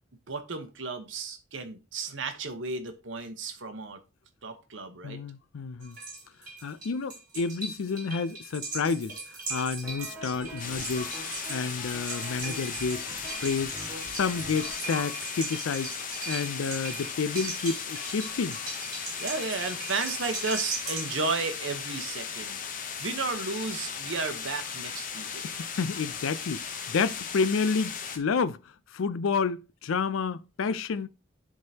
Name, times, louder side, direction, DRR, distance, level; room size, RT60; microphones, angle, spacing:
voice 1, 0.3-4.0 4.4-5.2 19.2-25.5, right 4 dB, 65° right, 1.0 m, -33 dB
voice 2, 5.0-6.0 6.6-9.2 9.5-11.2 11.5-13.1 13.4-13.7 14.1-15.9 16.3-18.6 25.4-28.6 28.9-31.1, left 5 dB, 75° left, 0.4 m, -30 dB
sound 1, 5.8-21.1, right 3 dB, 40° right, 3.3 m, -39 dB
sound 2, 9.8-15.0, right 1 dB, 10° right, 1.6 m, -44 dB
sound 3, 10.6-28.2, left 6 dB, 40° left, 0.7 m, -37 dB
10.5 x 3.7 x 2.8 m
head